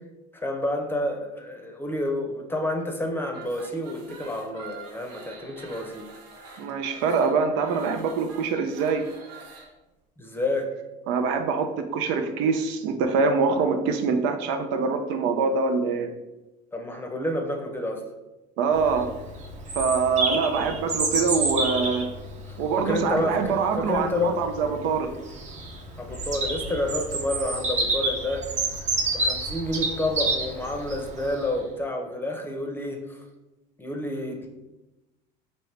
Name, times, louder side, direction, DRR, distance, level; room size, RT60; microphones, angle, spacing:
voice 1, 0.3-6.1 10.2-10.7 16.7-18.0 22.5-24.4 26.0-28.5 29.0-33.2 33.8-34.5, left 1 dB, 10° left, 3 dB, 0.7 m, -29 dB
sound 1, 3.3-9.7, right 4 dB, 85° right, 0.9 m, -46 dB
voice 2, 6.6-9.0 11.1-16.1 18.6-19.1 19.7-22.1 22.6-25.1, right 5 dB, 70° right, 6 dB, 0.5 m, -24 dB
Bird vocalization bird call bird song, 18.7-31.5, right 3 dB, 35° right, 0.8 m, -29 dB
4.4 x 2.8 x 3.2 m, 1.0 s
supercardioid pair, 95°, 21 cm